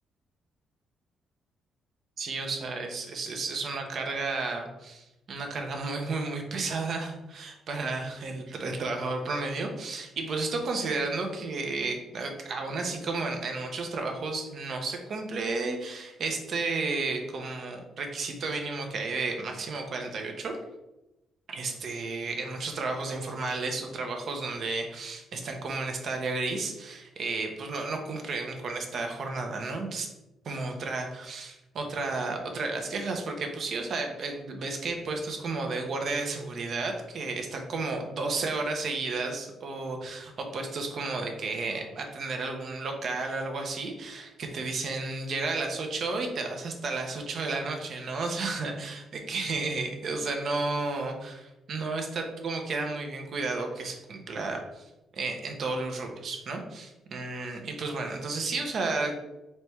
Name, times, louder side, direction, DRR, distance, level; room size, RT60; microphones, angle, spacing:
voice 1, 2.2-20.6 21.5-30.1 30.4-59.2, right 3 dB, 60° right, 3 dB, 0.8 m, -32 dB
4.2 x 3.1 x 3.4 m, 0.97 s
cardioid pair, 90°, 0 cm